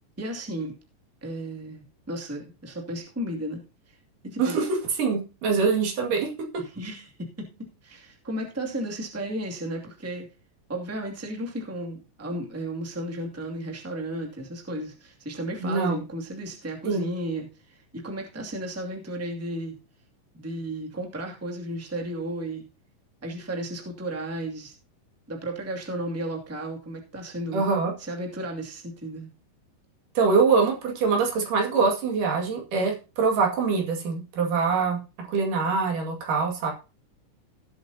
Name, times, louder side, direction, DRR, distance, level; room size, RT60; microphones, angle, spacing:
voice 1, 0.2-0.7 1.2-4.0 4.2-4.6 6.6-7.5 7.8-10.3 10.7-19.8 20.3-22.7 23.2-24.7 25.3-27.6 28.0-29.3, right 1 dB, 5° right, 1 dB, 1.8 m, -34 dB
voice 2, 4.4-6.3 15.6-16.0 16.9-17.1 27.5-27.9 30.2-36.7, right 5 dB, 70° right, 1 dB, 3.8 m, -24 dB
17.5 x 8.0 x 2.8 m, 0.31 s
omnidirectional pair, 3.9 m